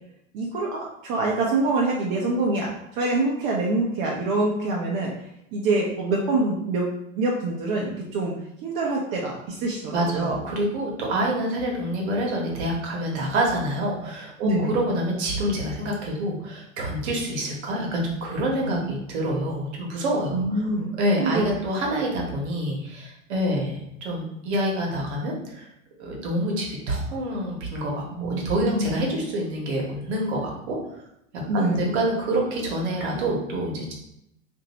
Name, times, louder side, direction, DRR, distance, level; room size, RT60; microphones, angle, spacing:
voice 1, 0.3-5.1 5.5-6.9 7.2-8.3 8.6-10.4 14.4-14.8 18.6-18.9 20.3-20.9 21.2-21.4 28.2-28.9 31.5-31.8, right 2 dB, 40° right, -3 dB, 0.6 m, -25 dB
voice 2, 9.9-20.7 21.0-25.7 26.0-31.0 31.5-33.9, right 1 dB, 55° right, -1 dB, 1.1 m, -27 dB
2.9 x 2.6 x 2.9 m, 0.79 s
figure-of-eight pair, 85°, 39 cm